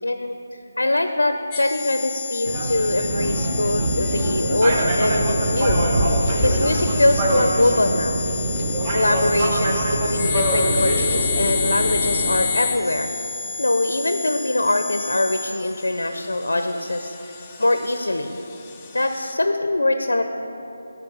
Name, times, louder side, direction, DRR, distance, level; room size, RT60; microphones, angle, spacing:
voice 1, 0.0-8.3 8.9-13.1 13.6-17.1 17.6-18.4 18.9-20.2, left 2 dB, 85° left, 7 dB, 0.4 m, -23 dB
sound 1, 1.5-19.3, left 6 dB, 15° left, 0.5 m, -30 dB
sound 2, 2.4-12.4, right 1 dB, 25° right, 0.8 m, -23 dB
9.6 x 4.3 x 5.4 m, 2.9 s
figure-of-eight pair, 165°, 0 cm